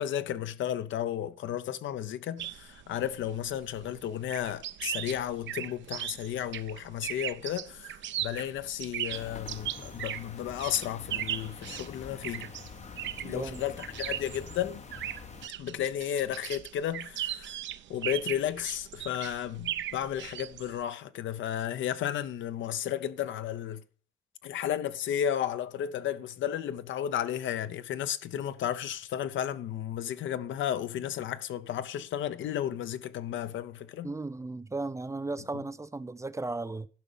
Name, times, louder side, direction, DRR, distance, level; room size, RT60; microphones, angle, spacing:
voice 1, 0.0-12.5 13.2-14.8 15.6-17.6 17.9-23.8 24.4-34.1, left 10 dB, 75° left, 0.6 m, -33 dB
sound 1, 2.4-20.8, right 11 dB, 70° right, 0.6 m, -38 dB
sound 2, 9.1-15.5, left 6 dB, 35° left, 0.6 m, -46 dB
voice 2, 13.2-13.6 34.0-36.9, right 2 dB, 15° right, 0.4 m, -35 dB
12.0 x 5.1 x 5.5 m
cardioid pair, 90°, 20 cm